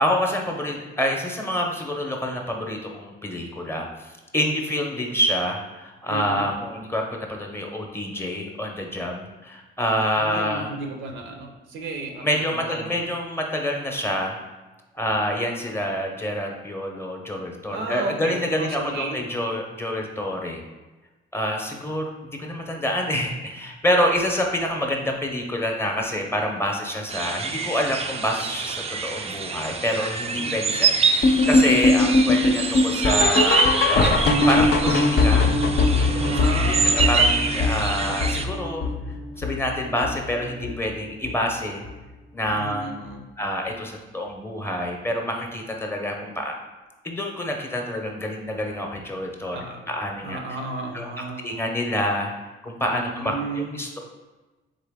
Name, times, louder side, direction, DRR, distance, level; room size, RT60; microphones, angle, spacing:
voice 1, 0.0-10.7 12.2-14.4 14.9-20.6 21.3-35.6 36.1-36.8 37.1-38.9 39.4-41.9 42.3-46.5 47.0-50.4 50.9-51.1 51.4-52.3 52.6-53.3 53.8-54.0, equal, 10° left, 1 dB, 0.7 m, -27 dB
voice 2, 6.1-6.5 10.1-13.1 17.7-19.2 30.4-31.0 36.1-37.6 38.0-38.4 42.5-43.3 49.5-49.9 50.2-51.5 52.8-53.8, right 3 dB, 80° right, 3 dB, 0.7 m, -34 dB
sound 1, 27.1-38.4, right 4 dB, 30° right, 0.4 m, -25 dB
sound 2, 31.2-40.3 40.6-40.9 41.2-41.3 41.9-42.0 42.5-42.6, left 2 dB, 55° left, 0.5 m, -21 dB
3.9 x 3.4 x 3.5 m, 1.2 s
cardioid pair, 90°, 20 cm